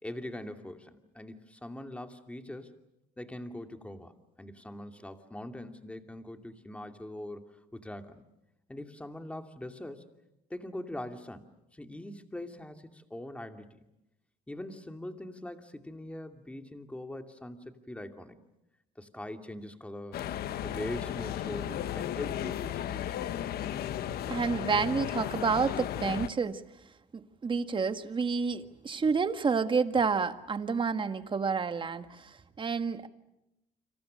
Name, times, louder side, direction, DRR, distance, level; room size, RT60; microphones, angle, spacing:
voice 1, 0.0-2.7 3.2-8.2 8.7-10.0 10.5-13.8 14.5-18.4 19.0-20.2 20.6-23.2, left 1 dB, 5° left, 6 dB, 2.6 m, -42 dB
sound 1, 20.1-26.3, left 11 dB, 65° left, 1.3 m, -35 dB
voice 2, 24.2-26.6 27.1-33.1, right 5 dB, 30° right, 10 dB, 1.7 m, -29 dB
29.5 x 26.5 x 6.5 m, 0.89 s
cardioid pair, 110°, 17 cm